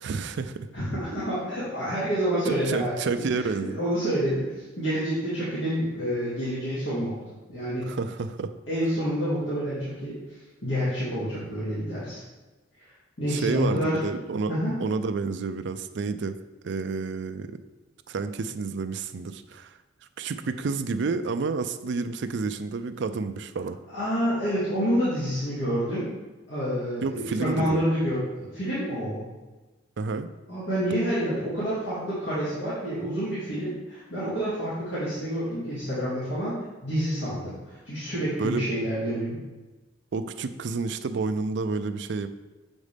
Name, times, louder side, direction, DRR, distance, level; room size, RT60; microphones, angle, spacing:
voice 1, 0.0-0.7 2.5-3.8 7.8-8.5 13.3-16.3 16.6-17.6 18.1-19.7 20.2-23.8 27.0-27.8 30.0-30.3 38.4-38.6 40.1-42.3, right 4 dB, 65° right, 10 dB, 0.4 m, -30 dB
voice 2, 0.7-2.9 3.3-7.1 7.5-7.9 8.7-10.2 10.6-12.2 13.2-14.0 14.5-14.7 23.9-26.1 26.5-29.3 30.5-39.3, equal, 75° left, -11 dB, 2.2 m, -28 dB
7.2 x 5.3 x 3.3 m, 1.2 s
head